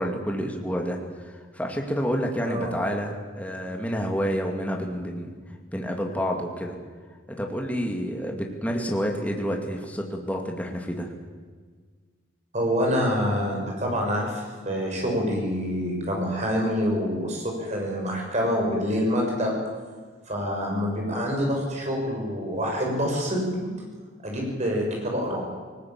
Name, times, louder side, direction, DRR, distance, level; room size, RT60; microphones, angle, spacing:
voice 1, 0.0-5.3 5.7-6.7 7.3-11.1, equal, 5° left, 1 dB, 2.4 m, -29 dB
voice 2, 12.5-19.6 20.3-23.6 24.2-25.4, equal, 35° right, 0 dB, 6.5 m, -26 dB
19.5 x 19.5 x 8.9 m, 1.5 s
head